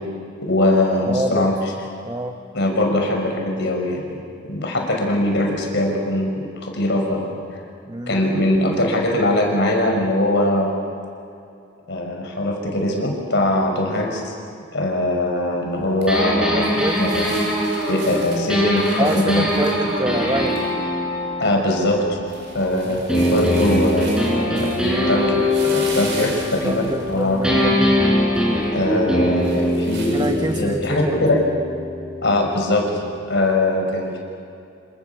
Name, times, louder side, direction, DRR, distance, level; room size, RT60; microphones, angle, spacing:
voice 1, 0.4-1.5 2.5-4.2 4.4-7.4 8.1-10.7 11.9-14.3 14.7-16.7 16.9-17.3 17.9-19.8 21.4-22.2 22.5-27.4 28.7-31.4 32.2-32.8 33.3-34.2, left 1 dB, 65° left, 2 dB, 6.2 m, -21 dB
voice 2, 1.1-1.5 2.1-2.4 7.9-8.2 16.5-17.1 19.0-20.6 21.5-21.6 22.8-23.0 26.6-28.0 30.1-31.2, right 1 dB, 20° right, 5 dB, 1.2 m, -26 dB
sound 1, 15.7-30.9, right 3 dB, 65° right, 7.5 m, -40 dB
sound 2, 16.1-22.6 23.1-27.1 27.4-33.2, left 1 dB, 5° right, 6.9 m, -22 dB
27.5 x 27.0 x 7.2 m, 2.6 s
head